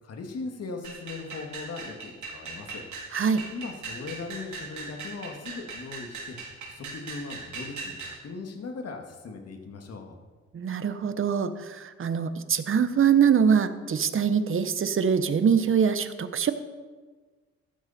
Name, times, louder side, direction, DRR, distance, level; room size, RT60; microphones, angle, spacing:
voice 1, 0.0-2.8 3.5-6.4 6.7-10.2, left 4 dB, 55° left, 3 dB, 2.3 m, -39 dB
sound 1, 0.8-8.2, right 4 dB, 70° right, 3.8 m, -39 dB
voice 2, 3.1-3.4 10.5-16.5, right 7 dB, 45° right, 11 dB, 1.1 m, -23 dB
14.5 x 12.5 x 4.4 m, 1.4 s
cardioid pair, 90°, 30 cm